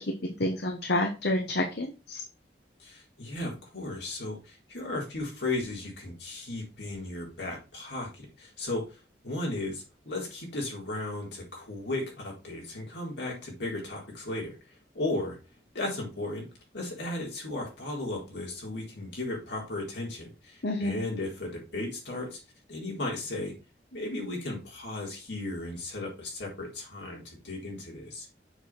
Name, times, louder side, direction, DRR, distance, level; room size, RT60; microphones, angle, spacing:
voice 1, 0.4-2.2 20.6-21.0, left 1 dB, 70° left, 4 dB, 1.1 m, -29 dB
voice 2, 2.8-9.0 9.2-15.4 15.7-22.4 22.7-23.5 23.9-28.3, left 2 dB, 85° left, -2 dB, 4.2 m, -35 dB
7.1 x 5.8 x 4.4 m, 0.30 s
head